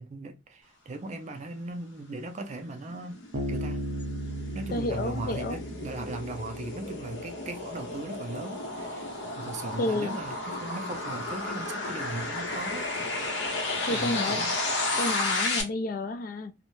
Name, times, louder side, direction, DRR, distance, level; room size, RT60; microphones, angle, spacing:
voice 1, 0.0-3.2 3.5-3.8 4.5-9.1 9.4-13.0 13.9-14.5, right 2 dB, 40° right, 0.4 m, -38 dB
sound 1, 2.4-15.6, left 2 dB, 75° left, 0.7 m, -33 dB
Bass guitar, 3.3-6.8, right 1 dB, 80° right, 0.6 m, -35 dB
voice 2, 4.7-5.6 9.8-10.1 13.9-14.4 15.0-16.5, left 2 dB, 50° left, 0.3 m, -30 dB
2.7 x 2.1 x 2.9 m
head